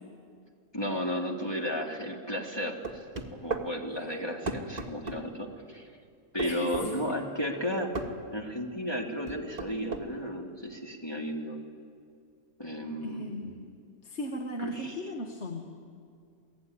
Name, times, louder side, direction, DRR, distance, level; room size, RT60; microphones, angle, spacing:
voice 1, 0.7-3.0 3.3-5.9 6.3-7.9 8.3-11.6 12.6-13.2 14.6-15.1, equal, 15° left, 0 dB, 2.5 m, -34 dB
sound 1, 2.8-3.7 4.5-5.2 6.4-6.9 7.9-8.1 9.3-10.1, right 3 dB, 30° right, 1.8 m, -34 dB
voice 2, 6.4-6.9 13.0-13.7 14.0-15.6, equal, 50° left, 2 dB, 1.9 m, -37 dB
28.0 x 18.0 x 9.9 m, 2.3 s
omnidirectional pair, 1.5 m